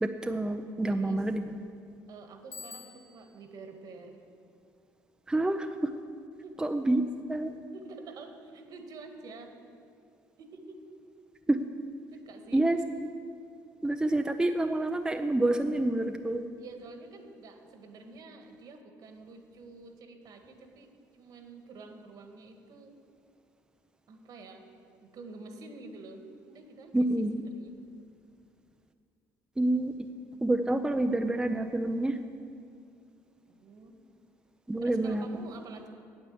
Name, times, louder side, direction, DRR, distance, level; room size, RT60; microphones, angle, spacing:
voice 1, 0.0-1.4 5.3-5.9 6.6-7.0 7.3-7.5 11.5-11.6 12.5-13.1 13.8-16.4 26.9-27.4 29.6-30.1 30.4-32.2 34.7-35.3, right 1 dB, 10° right, 6 dB, 0.5 m, -28 dB
voice 2, 0.9-1.2 2.1-4.2 6.4-6.6 7.7-9.5 10.4-10.8 12.1-12.6 16.6-22.9 24.1-24.7 25.0-27.1 27.3-27.8 33.5-34.0 34.8-35.9, right 3 dB, 55° right, 5 dB, 1.6 m, -48 dB
Bicycle bell, 2.5-3.5, left 5 dB, 35° left, 1.1 m, -47 dB
9.0 x 8.2 x 7.8 m, 2.4 s
supercardioid pair, 90°, 8 cm